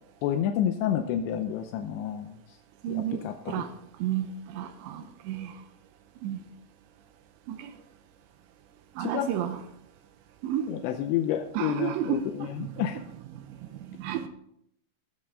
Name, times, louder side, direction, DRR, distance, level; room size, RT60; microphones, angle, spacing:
voice 1, 0.2-2.4 2.9-3.6 9.0-9.3 10.7-13.0, left 10 dB, 85° left, 6 dB, 2.9 m, -29 dB
voice 2, 2.8-3.7 4.0-5.6 6.2-6.4 7.5-7.7 9.0-9.6 10.4-10.7 11.5-12.9 13.7-14.3, right 10 dB, 85° right, 8 dB, 2.9 m, -32 dB
19.0 x 7.6 x 3.7 m, 0.75 s
omnidirectional pair, 5.5 m